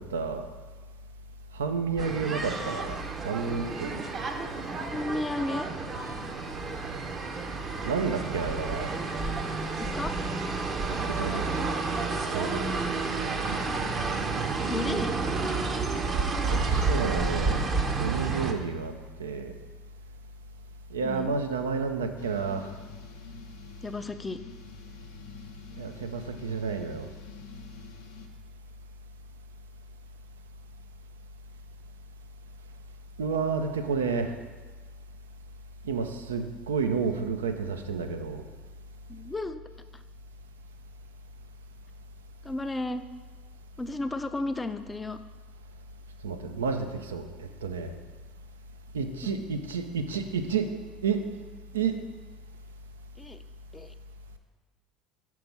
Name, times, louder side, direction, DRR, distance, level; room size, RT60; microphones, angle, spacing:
voice 1, 0.1-0.5 1.5-3.0 3.2-4.0 7.8-8.9 11.2-11.6 12.3-12.7 16.5-17.6 18.0-18.9 19.2-19.5 20.9-22.7 25.8-27.1 33.2-34.3 35.8-38.4 46.2-47.9 48.9-50.7 51.0-51.2 51.7-52.0, right 5 dB, 85° right, 7 dB, 0.5 m, -30 dB
sound 1, 2.0-18.5, right 4 dB, 35° right, 0.7 m, -30 dB
voice 2, 4.8-5.7 9.8-10.2 14.7-15.1 21.0-21.3 23.8-24.4 39.1-39.6 39.9-40.0 42.4-43.0 43.8-45.2 49.2-49.5 53.2-53.4 53.7-53.9, left 2 dB, 15° left, 10 dB, 0.4 m, -33 dB
sound 2, 22.2-28.3, left 5 dB, 75° left, 0.6 m, -47 dB
5.9 x 4.6 x 5.3 m, 1.3 s
hypercardioid pair, 70°, 0 cm